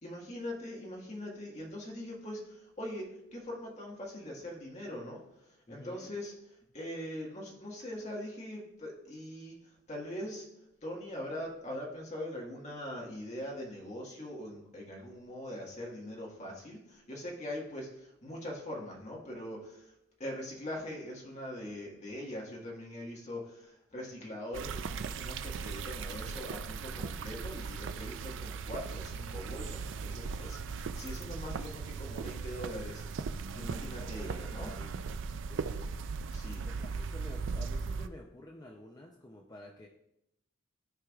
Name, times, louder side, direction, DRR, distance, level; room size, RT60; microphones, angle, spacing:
voice 1, 0.0-6.3 6.7-10.5 10.8-19.9 20.2-34.7 36.3-36.7, left 1 dB, 35° left, -2 dB, 1.6 m, -42 dB
voice 2, 5.7-6.1 34.0-36.1 36.7-39.9, left 1 dB, 20° left, 0 dB, 0.5 m, -51 dB
sound 1, 24.5-38.1, right 5 dB, 65° right, 0.4 m, -38 dB
13.0 x 4.7 x 2.4 m, 0.81 s
head